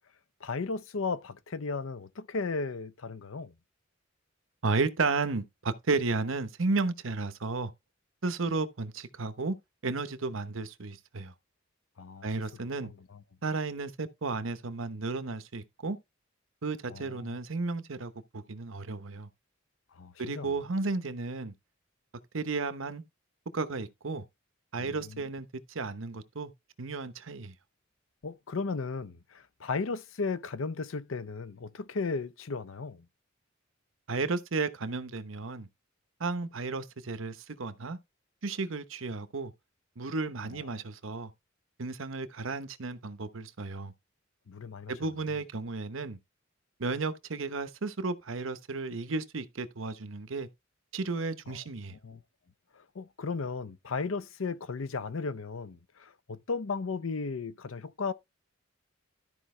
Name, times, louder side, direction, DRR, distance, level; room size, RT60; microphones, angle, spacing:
voice 1, 0.4-3.5 12.0-12.3 12.8-12.9 16.9-17.4 20.0-20.5 24.8-25.2 28.2-33.0 40.5-40.6 44.5-44.9 51.5-51.6 51.9-52.2 53.0-58.1, left 4 dB, 80° left, 0.6 m, -35 dB
voice 2, 4.6-7.7 8.2-9.6 9.8-11.3 12.2-12.9 13.4-16.0 16.6-19.3 20.2-21.5 22.3-23.0 23.5-24.2 24.7-26.5 26.8-27.5 34.1-35.7 36.2-38.0 38.4-39.5 40.0-41.3 41.8-43.9 44.9-46.2 46.8-50.5 50.9-51.9, right 3 dB, 80° right, 0.9 m, -33 dB
12.5 x 5.1 x 3.2 m
head